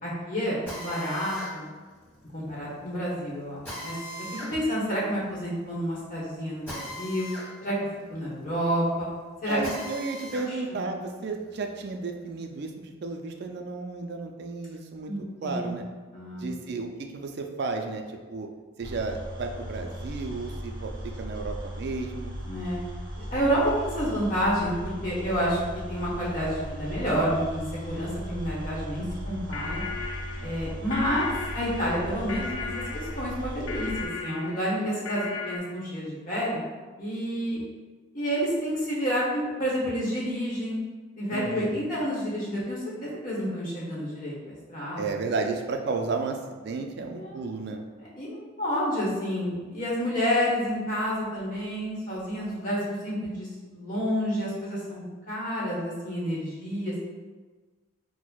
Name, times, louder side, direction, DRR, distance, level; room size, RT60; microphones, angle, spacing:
voice 1, 0.0-1.6 2.3-7.3 7.6-7.8 8.1-9.1 9.4-9.6 10.3-10.8 15.0-15.8 16.1-16.6 22.4-22.8 23.3-29.8 30.4-35.2 35.5-36.6 37.0-37.6 38.1-40.8 41.2-45.2 47.1-47.4 48.0-56.9, equal, 40° left, -7 dB, 1.0 m, -29 dB
Drill, 0.7-10.5 10.9-12.5, left 1 dB, 10° left, 1.1 m, -42 dB
voice 2, 9.5-15.8 16.4-18.5 18.8-20.9 21.2-22.3 30.4-30.8 41.3-41.8 45.0-47.8, right 3 dB, 50° right, 4 dB, 0.3 m, -33 dB
sound 1, 18.8-34.1, equal, 20° right, 0.9 m, -37 dB
sound 2, 29.3-35.6, left 4 dB, 75° left, 0.4 m, -36 dB
6.0 x 2.0 x 2.3 m, 1.4 s
head